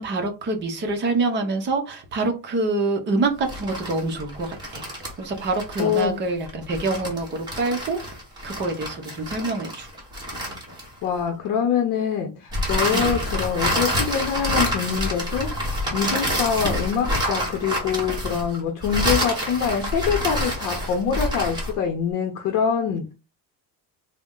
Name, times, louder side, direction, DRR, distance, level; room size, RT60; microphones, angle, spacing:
voice 1, 0.0-4.8 5.2-8.0 8.4-9.9 12.9-13.2, right 3 dB, 25° right, 4 dB, 0.7 m, -26 dB
sound 1, 3.4-11.2 12.5-21.8, equal, 10° right, 1.1 m, -27 dB
voice 2, 5.8-6.2 11.0-23.1, left 7 dB, 55° left, 3 dB, 0.7 m, -25 dB
4.0 x 2.1 x 3.6 m, 0.29 s
cardioid pair, 180°, 40 cm